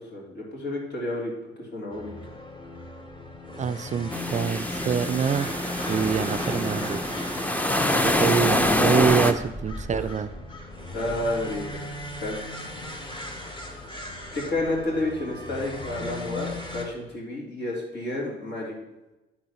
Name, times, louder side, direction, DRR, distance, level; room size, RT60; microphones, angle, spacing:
voice 1, 0.0-1.3 1.7-2.1 9.9-10.1 10.9-12.4 14.3-18.7, left 2 dB, 65° left, -3 dB, 3.2 m, -30 dB
sound 1, 1.9-16.9, left 1 dB, 25° left, 1.6 m, -37 dB
voice 2, 3.6-5.5 5.9-7.0 8.0-10.3, right 7 dB, 35° right, 12 dB, 0.4 m, -26 dB
sound 2, 4.1-9.3, left 1 dB, 10° left, 0.6 m, -25 dB
9.3 x 3.9 x 6.2 m, 1.0 s
cardioid pair, 90°, 20 cm